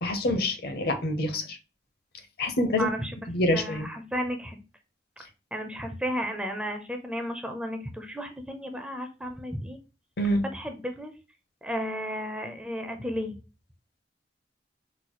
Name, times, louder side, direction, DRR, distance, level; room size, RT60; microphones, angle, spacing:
voice 1, 0.0-1.6 2.4-2.9 3.3-3.9 10.2-10.5, left 1 dB, 55° left, 7 dB, 0.6 m, -26 dB
voice 2, 2.8-3.3 3.5-4.6 5.5-9.8 10.5-11.1 11.6-13.3, equal, 5° right, 5 dB, 0.4 m, -33 dB
4.0 x 2.2 x 2.8 m, 0.32 s
head